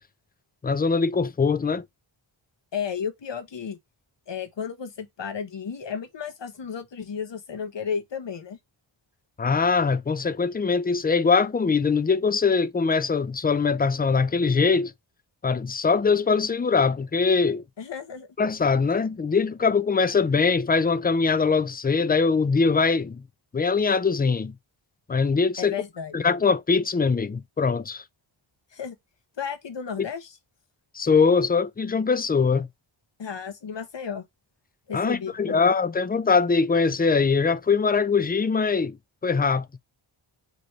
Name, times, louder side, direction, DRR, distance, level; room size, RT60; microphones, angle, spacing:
voice 1, 0.6-1.8 9.4-14.9 15.4-17.6 18.4-23.2 23.5-24.5 25.1-25.8 26.1-28.0 30.0-30.1 30.9-32.7 34.9-39.0 39.2-39.7, left 5 dB, 20° left, 0.4 m, -22 dB
voice 2, 2.7-3.8 4.3-8.6 17.8-18.3 25.6-26.1 28.7-29.0 29.4-30.4 33.2-34.2 34.9-35.7, left 7 dB, 60° left, 1.3 m, -33 dB
5.1 x 3.1 x 3.2 m
wide cardioid pair, 90°, 49 cm